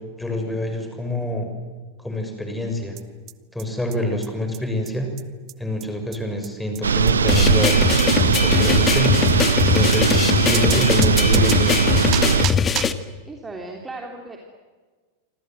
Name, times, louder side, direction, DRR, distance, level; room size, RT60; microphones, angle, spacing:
voice 1, 0.2-1.5 2.0-2.9 3.5-5.1 5.6-7.8 8.3-9.3 9.7-12.0, left 1 dB, 5° left, 5 dB, 6.6 m, -26 dB
sound 1, 3.0-3.1 3.3-3.4 3.6-3.7 3.9-4.0 4.2-4.3 4.5-4.6 4.9-5.0 5.2-5.3 5.5-5.6 5.8-5.9 6.1-6.2 6.4-6.5 6.8-6.9 7.1-7.2 7.4-7.5 7.7-7.8 8.0-8.1 8.3-8.4 8.6-8.7 9.0-9.1 9.3-9.4 9.6-9.7 9.9-10.0 10.2-10.3 10.5-13.1, right 15 dB, 35° right, 1.0 m, -31 dB
sound 2, 6.8-12.5, right 6 dB, 70° right, 1.0 m, -19 dB
sound 3, 7.3-12.9, left 7 dB, 25° left, 1.7 m, -21 dB
voice 2, 13.2-14.4, right 2 dB, 10° right, 1 dB, 3.5 m, -36 dB
28.5 x 25.5 x 8.0 m, 1.4 s
figure-of-eight pair, 90°, 0 cm